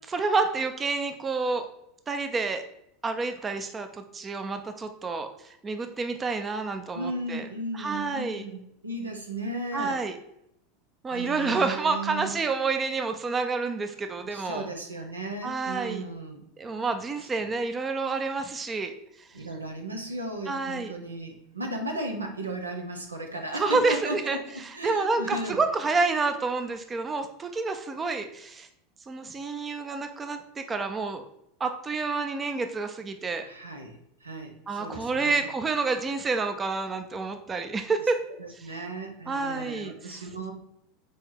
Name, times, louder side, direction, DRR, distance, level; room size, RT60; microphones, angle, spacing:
voice 1, 0.0-1.7 2.1-2.6 3.0-7.5 7.7-8.4 9.7-10.2 11.0-14.7 15.4-16.0 16.6-19.3 20.5-20.9 23.6-24.4 24.6-28.7 29.1-31.2 31.6-33.5 34.7-38.2 38.6-38.7 39.3-40.2, right 4 dB, 20° right, 7 dB, 0.5 m, -29 dB
voice 2, 6.9-10.0 11.1-12.4 14.2-16.4 19.3-25.6 33.4-35.5 38.4-40.5, right 1 dB, 85° right, 3 dB, 0.9 m, -35 dB
4.7 x 4.3 x 4.8 m, 0.78 s
figure-of-eight pair, 80°, 0 cm